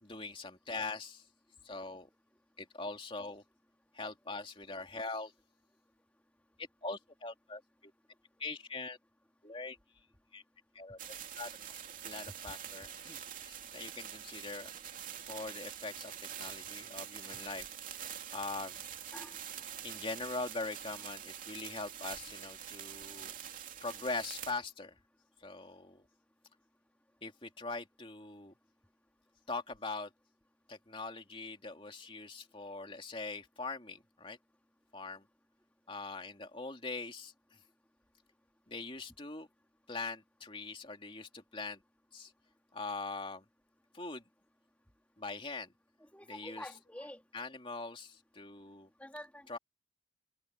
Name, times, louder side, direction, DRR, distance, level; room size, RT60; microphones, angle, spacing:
voice 1, 0.0-1.2 1.6-2.1 2.6-3.4 3.9-5.3 6.8-7.9 8.4-9.0 9.4-9.8 10.3-10.4 10.7-11.0 11.3-11.5 12.0-14.7 15.3-16.1 16.4-17.7 18.3-18.8 19.8-23.3 23.8-24.9 25.4-26.0 27.2-28.5 29.5-30.1 30.7-34.4 34.9-35.2 35.9-37.6 38.7-39.5 39.9-41.8 42.1-42.3 42.7-43.4 43.9-44.2 45.2-45.7 46.3-46.6 47.3-48.9 49.5-49.6, left 3 dB, 30° left, 2.9 m, -42 dB
sound 1, 11.0-24.5, right 9 dB, 45° right, 3.2 m, -45 dB
voice 2, 19.1-19.4 46.0-47.2 49.0-49.5, left 1 dB, 10° left, 2.9 m, -47 dB
open air
head